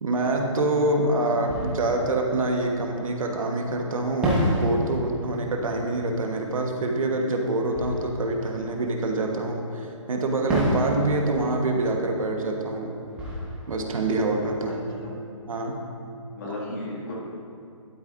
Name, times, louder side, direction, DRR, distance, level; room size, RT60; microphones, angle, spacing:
voice 1, 0.0-12.9 13.7-14.8 15.5-15.8, right 2 dB, 90° right, 2 dB, 1.4 m, -26 dB
Fireworks, 0.8-0.9 1.4-3.4 4.2-9.6 10.5-15.2, equal, 5° right, 1.1 m, -32 dB
voice 2, 14.7-15.1 16.3-17.1, left 1 dB, 35° left, -5 dB, 2.3 m, -35 dB
12.0 x 9.6 x 2.6 m, 2.5 s
hypercardioid pair, 170°, 17 cm